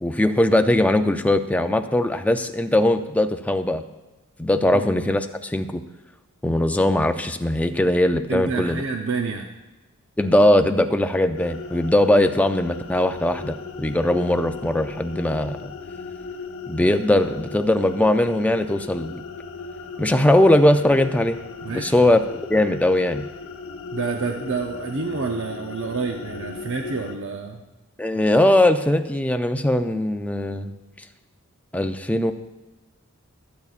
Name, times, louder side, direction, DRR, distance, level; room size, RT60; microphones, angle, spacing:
voice 1, 0.0-3.8 4.4-5.8 6.4-8.8 10.2-15.7 16.7-19.2 20.0-21.4 21.7-23.2 28.0-30.7 31.7-32.3, left 1 dB, 5° left, 7 dB, 0.5 m, -20 dB
voice 2, 8.3-9.5 21.6-21.9 23.9-27.6, right 4 dB, 60° right, 3 dB, 0.7 m, -28 dB
sound 1, 11.4-27.2, left 4 dB, 65° left, 0.9 m, -37 dB
22.5 x 8.4 x 2.5 m, 1.1 s
head